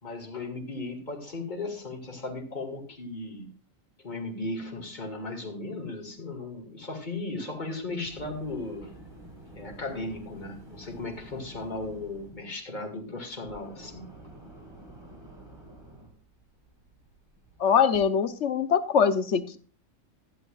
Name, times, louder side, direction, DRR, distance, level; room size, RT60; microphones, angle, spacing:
voice 1, 0.0-3.5 4.0-8.9 9.5-14.1, left 2 dB, 35° left, 3 dB, 2.4 m, -36 dB
sound 1, 7.8-18.0, right 1 dB, 20° right, 2.7 m, -49 dB
voice 2, 17.6-19.6, left 7 dB, 60° left, 12 dB, 1.2 m, -23 dB
14.0 x 11.0 x 2.4 m, 0.40 s
omnidirectional pair, 1.4 m